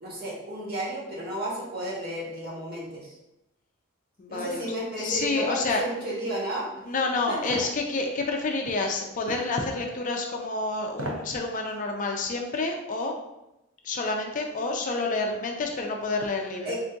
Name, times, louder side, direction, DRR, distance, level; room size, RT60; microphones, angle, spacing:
voice 1, 0.0-3.2 4.3-6.7 7.3-7.6 16.6-16.8, right 1 dB, 45° right, -6 dB, 1.4 m, -33 dB
voice 2, 4.2-4.7 5.0-5.8 6.9-13.1 13.8-16.8, left 3 dB, 40° left, 2 dB, 0.4 m, -29 dB
sound 1, 7.5-7.7 9.3-9.5 10.9-11.3 11.7-11.8, right 1 dB, 75° right, 0.7 m, -34 dB
3.6 x 2.7 x 3.4 m, 0.92 s
head